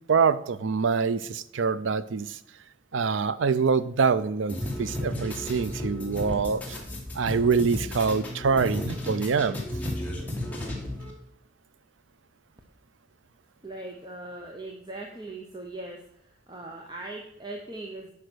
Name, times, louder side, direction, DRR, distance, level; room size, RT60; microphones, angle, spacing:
voice 1, 0.1-2.4 2.9-6.8 7.1-9.6, right 5 dB, 85° right, 16 dB, 0.5 m, -25 dB
sound 1, 4.5-11.1, left 1 dB, 10° left, 1.7 m, -33 dB
voice 2, 13.6-18.1, right 2 dB, 25° right, 1 dB, 0.8 m, -40 dB
10.0 x 5.5 x 6.2 m, 0.76 s
head